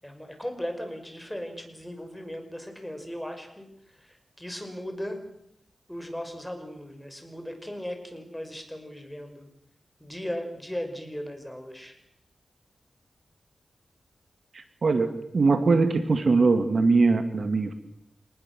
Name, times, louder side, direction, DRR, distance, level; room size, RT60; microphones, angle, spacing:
voice 1, 0.0-5.3 5.9-9.5 10.0-12.0, equal, 5° left, 5 dB, 6.0 m, -37 dB
voice 2, 14.8-17.7, right 3 dB, 60° right, 9 dB, 2.2 m, -21 dB
27.0 x 20.0 x 7.7 m, 0.76 s
wide cardioid pair, 75°, 0 cm